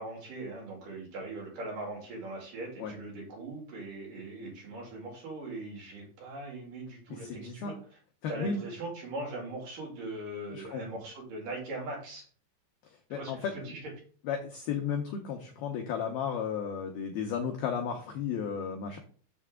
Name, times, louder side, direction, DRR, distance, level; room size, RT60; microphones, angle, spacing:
voice 1, 0.0-7.7 8.3-12.2 13.1-13.8, right 2 dB, 50° right, -1 dB, 3.4 m, -40 dB
voice 2, 7.1-7.7 8.2-8.6 10.5-10.8 13.1-13.5 14.2-19.0, left 6 dB, 85° left, 2 dB, 2.1 m, -34 dB
7.0 x 6.8 x 3.7 m, 0.43 s
omnidirectional pair, 5.5 m